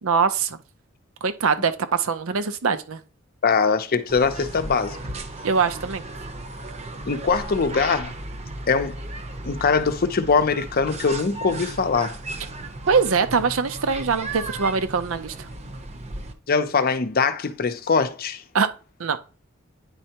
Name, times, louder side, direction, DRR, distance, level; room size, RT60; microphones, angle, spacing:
voice 1, 0.0-0.6 1.2-3.0 5.4-6.0 12.9-15.3 18.5-18.7 19.0-19.2, right 5 dB, 80° right, 0.7 m, -22 dB
voice 2, 3.4-5.0 7.1-8.1 8.7-8.9 9.4-12.1 16.5-18.4, left 5 dB, 45° left, 0.6 m, -22 dB
sound 1, 4.1-16.3, right 2 dB, 35° right, 0.7 m, -35 dB
9.7 x 4.4 x 2.9 m
head